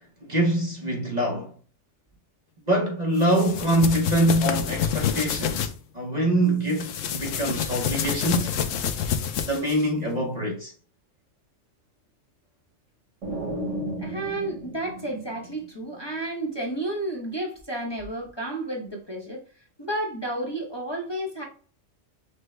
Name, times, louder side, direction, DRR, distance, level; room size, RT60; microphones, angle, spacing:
voice 1, 0.3-1.5 2.7-8.5 9.5-10.7, right 1 dB, 40° right, 0.9 m, -24 dB
sound 1, 3.2-5.7 6.7-9.9, left 8 dB, 85° left, 1.0 m, -28 dB
sound 2, 13.2-16.0, right 1 dB, 75° right, 1.9 m, -34 dB
voice 2, 14.0-19.4 19.8-21.4, right 1 dB, 20° left, 0.9 m, -31 dB
6.1 x 2.2 x 3.2 m
omnidirectional pair, 1.3 m